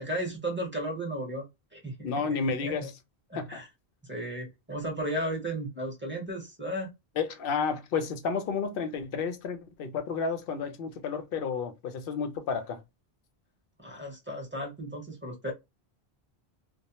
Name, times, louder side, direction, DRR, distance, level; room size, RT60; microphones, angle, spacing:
voice 1, 0.0-2.9 3.3-3.7 4.0-6.9 13.8-15.5, right 1 dB, 10° right, 0.8 m, -35 dB
voice 2, 2.0-2.9 3.4-3.6 7.2-12.8, left 5 dB, 65° left, 0.8 m, -31 dB
2.2 x 2.0 x 2.8 m
omnidirectional pair, 1.0 m